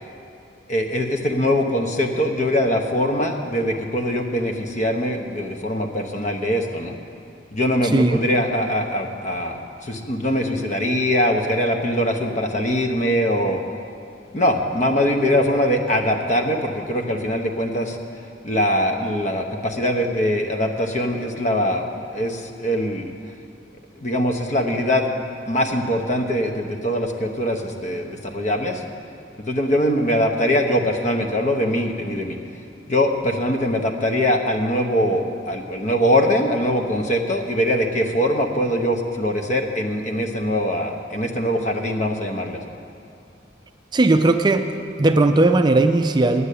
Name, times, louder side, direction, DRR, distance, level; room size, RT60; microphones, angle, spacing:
voice 1, 0.7-7.0 7.5-13.6 14.3-18.0 18.4-23.1 24.0-25.0 25.5-28.8 29.4-32.4 32.9-42.6, equal, 45° left, 4 dB, 1.0 m, -22 dB
voice 2, 43.9-44.7 45.0-46.5, right 2 dB, 25° right, 7 dB, 0.4 m, -17 dB
9.6 x 9.0 x 8.3 m, 2.7 s
head